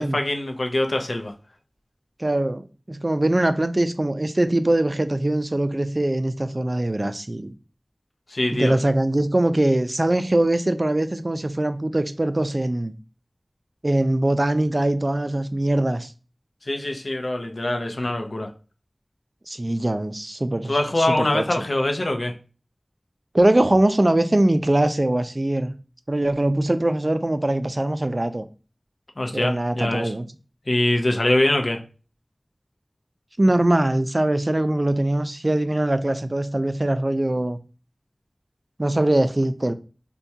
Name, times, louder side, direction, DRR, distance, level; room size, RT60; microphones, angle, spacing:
voice 1, 0.0-1.3 8.3-8.8 16.7-18.5 20.7-22.3 29.2-30.1 30.7-31.8, left 1 dB, 75° left, 0.6 m, -23 dB
voice 2, 2.2-7.5 8.5-12.9 13.8-16.1 19.5-21.4 23.3-25.7 26.1-28.5 29.3-30.3 33.4-37.6 38.8-39.7, right 1 dB, 45° right, 0.3 m, -22 dB
4.5 x 2.2 x 2.7 m
wide cardioid pair, 40°, 0 cm